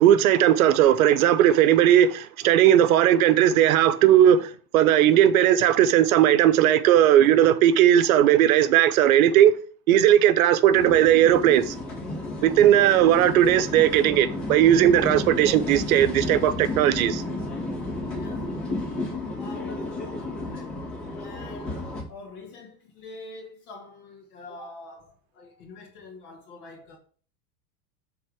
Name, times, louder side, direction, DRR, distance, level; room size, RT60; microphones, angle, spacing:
voice 1, 0.0-9.5 9.9-11.8 12.4-17.2, right 11 dB, 65° right, 0.8 m, -18 dB
sound 1, 10.7-22.0, left 2 dB, 25° left, 2.4 m, -32 dB
voice 2, 18.1-18.6 19.3-27.0, left 3 dB, 65° left, 1.7 m, -45 dB
7.9 x 3.7 x 4.8 m
supercardioid pair, 150°, 47 cm